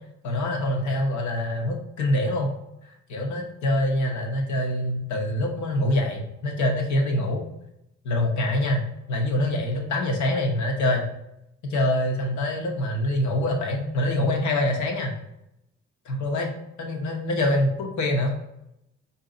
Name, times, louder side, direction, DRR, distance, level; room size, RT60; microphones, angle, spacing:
voice 1, 0.2-2.5 3.1-7.4 8.0-11.1 11.7-15.1 16.0-16.5 16.8-18.3, left 1 dB, 70° left, 2 dB, 1.1 m, -25 dB
4.6 x 2.8 x 3.9 m, 0.83 s
cardioid pair, 90°, 30 cm